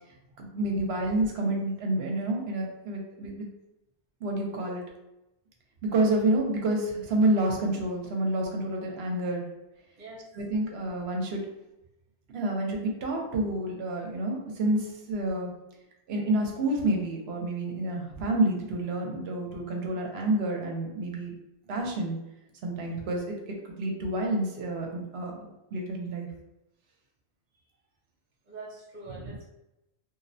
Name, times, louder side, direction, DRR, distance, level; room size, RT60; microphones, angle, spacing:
voice 1, 0.4-3.5 4.2-4.8 5.8-9.5 10.4-11.4 12.3-15.5 16.1-21.3 21.7-22.2 22.6-23.3 23.8-26.3, right 1 dB, 75° right, 1 dB, 0.8 m, -29 dB
voice 2, 10.0-10.3 28.4-29.4, right 2 dB, 45° right, -4 dB, 0.9 m, -44 dB
2.5 x 2.0 x 2.6 m, 0.90 s
omnidirectional pair, 1.1 m